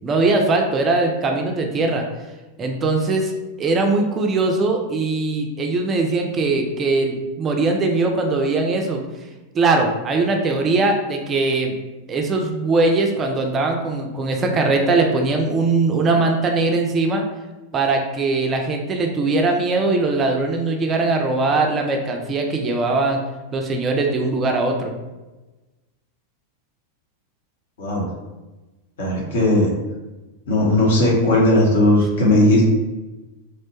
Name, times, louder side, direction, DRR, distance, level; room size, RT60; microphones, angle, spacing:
voice 1, 0.0-2.0 2.6-3.3 3.6-9.0 9.5-11.8 12.1-17.2 17.7-23.2 23.5-24.9, right 3 dB, 25° right, 2 dB, 0.4 m, -20 dB
voice 2, 29.0-29.7 30.5-32.6, left 1 dB, 60° left, -2 dB, 0.8 m, -17 dB
2.9 x 2.1 x 2.8 m, 1.1 s
figure-of-eight pair, 90°, 0 cm